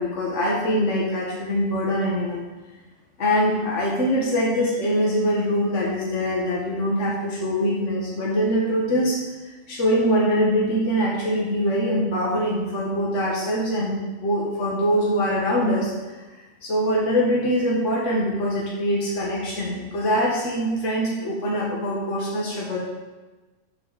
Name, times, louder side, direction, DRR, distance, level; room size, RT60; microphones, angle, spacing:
voice 1, 0.0-2.5 3.2-9.2 9.7-15.9 16.3-22.8, equal, 70° left, -4 dB, 1.9 m, -23 dB
12.0 x 7.8 x 4.2 m, 1.2 s
omnidirectional pair, 1.3 m